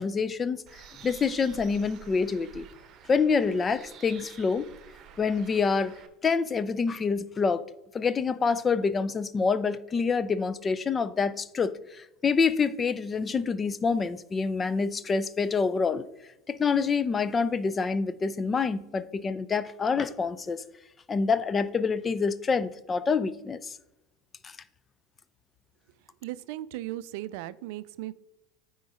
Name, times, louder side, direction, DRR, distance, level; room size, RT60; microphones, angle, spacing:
voice 1, 0.0-2.7 3.1-4.7 5.2-5.9 6.2-7.6 7.9-16.1 16.5-20.6 21.1-23.8 24.4-24.6, left 5 dB, 25° left, 0.5 m, -27 dB
Bird, 0.7-6.1, right 8 dB, 45° right, 1.0 m, -50 dB
voice 2, 26.2-28.1, right 15 dB, 65° right, 0.4 m, -37 dB
9.2 x 3.9 x 4.9 m
hypercardioid pair, 85°, 0 cm